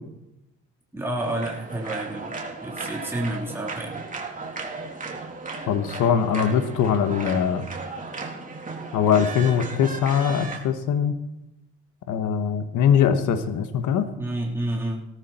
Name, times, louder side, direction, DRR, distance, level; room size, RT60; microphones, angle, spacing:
voice 1, 0.9-2.3 2.6-4.0 14.2-15.1, right 1 dB, 10° right, -3 dB, 3.8 m, -29 dB
sound 1, 1.2-10.6, right 4 dB, 25° right, 3.8 m, -35 dB
voice 2, 5.7-7.6 8.9-11.1 12.1-14.1, left 8 dB, 80° left, 9 dB, 1.5 m, -22 dB
18.0 x 13.5 x 4.4 m, 0.89 s
cardioid pair, 90°, 30 cm